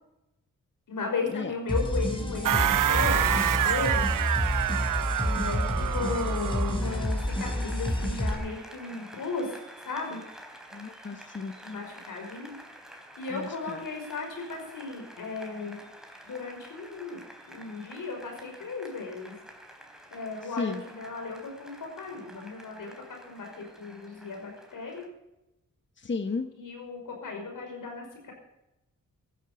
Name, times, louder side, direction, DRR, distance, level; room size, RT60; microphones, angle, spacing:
voice 1, 0.9-4.1 5.2-9.6 9.9-10.2 11.6-12.5 13.2-15.8 16.2-17.2 17.5-19.3 20.1-25.1 26.6-28.3, left 4 dB, 85° left, 2 dB, 5.7 m, -35 dB
sound 1, 1.7-8.3, equal, 15° left, 5.5 m, -29 dB
sound 2, 2.4-6.9, right 12 dB, 85° right, 0.6 m, -27 dB
Applause, 6.8-25.1, equal, ahead, 3.8 m, -49 dB
voice 2, 10.7-11.5 13.3-13.8 20.6-20.8 26.0-26.5, left 4 dB, 35° left, 9 dB, 1.2 m, -33 dB
16.0 x 12.0 x 6.9 m, 0.89 s
cardioid pair, 70°, 31 cm